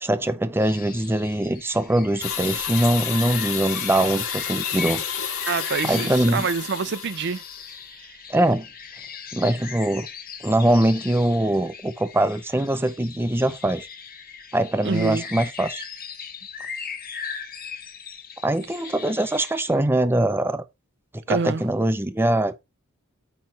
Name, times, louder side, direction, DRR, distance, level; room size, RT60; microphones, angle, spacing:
voice 1, 0.0-5.0 5.8-6.5 8.3-8.7 9.3-10.1 10.4-13.9 14.5-15.8 18.4-20.6 21.1-22.5, right 1 dB, 10° right, 0.6 m, -22 dB
sound 1, 0.6-19.8, left 6 dB, 45° left, 1.4 m, -39 dB
sound 2, 2.2-7.6, left 8 dB, 85° left, 2.0 m, -30 dB
voice 2, 5.5-8.2 14.8-15.2 21.3-21.6, right 5 dB, 55° right, 0.5 m, -27 dB
8.8 x 3.2 x 5.7 m
head